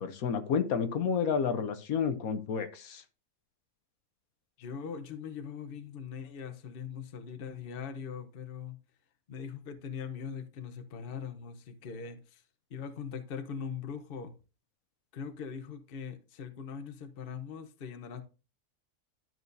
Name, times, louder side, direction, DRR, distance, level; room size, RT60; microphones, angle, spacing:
voice 1, 0.0-3.0, left 6 dB, 70° left, 1.2 m, -30 dB
voice 2, 4.6-8.8 9.3-12.4 12.7-14.3 15.1-18.2, left 6 dB, 45° left, 0.9 m, -41 dB
12.0 x 6.1 x 2.6 m
omnidirectional pair, 1.6 m